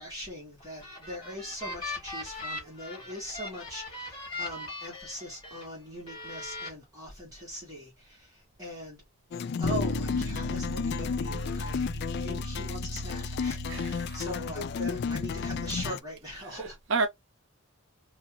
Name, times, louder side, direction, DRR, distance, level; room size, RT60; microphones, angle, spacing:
voice 1, 0.0-9.0 9.6-16.8, equal, 15° right, 1.7 m, -41 dB
sound 1, 0.6-5.7 6.1-6.7, left 2 dB, 25° left, 1.6 m, -39 dB
sound 2, 9.3-16.0, left 6 dB, 50° left, 0.3 m, -33 dB
Bass guitar, 9.6-15.9, left 1 dB, 75° left, 0.9 m, -35 dB
voice 2, 13.7-14.3 16.3-17.1, right 4 dB, 60° right, 0.6 m, -32 dB
4.1 x 2.5 x 2.9 m
head